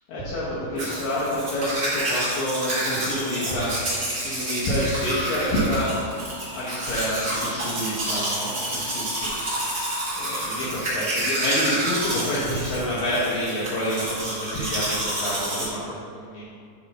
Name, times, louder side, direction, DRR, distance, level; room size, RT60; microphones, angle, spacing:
voice 1, 0.1-3.7 4.2-6.0 6.5-9.6 10.1-16.5, equal, 70° left, -9 dB, 2.6 m, -28 dB
Domestic sounds home sounds, 0.8-15.6, right 1 dB, 55° right, 0.8 m, -29 dB
10.0 x 3.6 x 4.1 m, 2.3 s
omnidirectional pair, 4.5 m